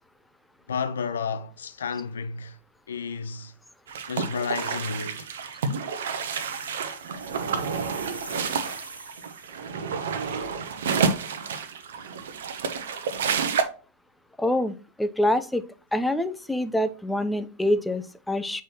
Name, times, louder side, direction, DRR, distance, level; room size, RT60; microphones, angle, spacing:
voice 1, 0.7-2.6 2.9-3.5 4.1-5.3, left 5 dB, 65° left, 0.6 m, -31 dB
sound 1, 3.9-13.6, right 5 dB, 60° right, 0.8 m, -29 dB
sound 2, 6.0-9.7, right 2 dB, 80° right, 1.2 m, -43 dB
voice 2, 14.4-15.6 15.9-18.6, left 1 dB, 5° left, 0.5 m, -26 dB
7.7 x 4.6 x 2.9 m
figure-of-eight pair, 90°, 0 cm